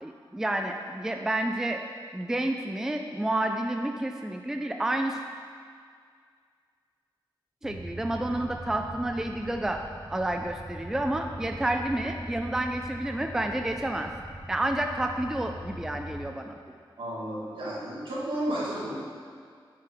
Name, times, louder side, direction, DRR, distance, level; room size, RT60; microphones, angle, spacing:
voice 1, 0.0-1.8 2.1-5.2 7.6-9.8 10.1-14.1 14.5-16.5, right 1 dB, 5° right, 4 dB, 0.3 m, -30 dB
sound 1, 7.6-16.2, equal, 75° left, 1.9 m, -42 dB
voice 2, 17.0-19.0, right 1 dB, 75° right, -7 dB, 2.1 m, -32 dB
8.0 x 6.8 x 3.5 m, 2.1 s
wide cardioid pair, 140°, 9 cm